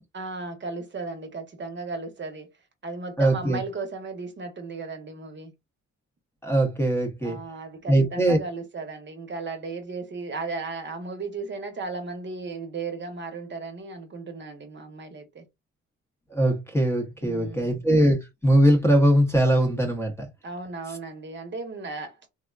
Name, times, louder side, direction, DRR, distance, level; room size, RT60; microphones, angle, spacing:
voice 1, 0.1-2.5 2.8-5.5 7.2-15.4 17.2-17.8 20.4-22.3, right 3 dB, 40° right, 0.8 m, -35 dB
voice 2, 3.2-3.6 6.4-7.4 7.9-8.4 16.3-18.2 18.4-20.3, right 1 dB, 10° left, 0.8 m, -21 dB
3.5 x 2.1 x 2.3 m
cardioid pair, 90°, 30 cm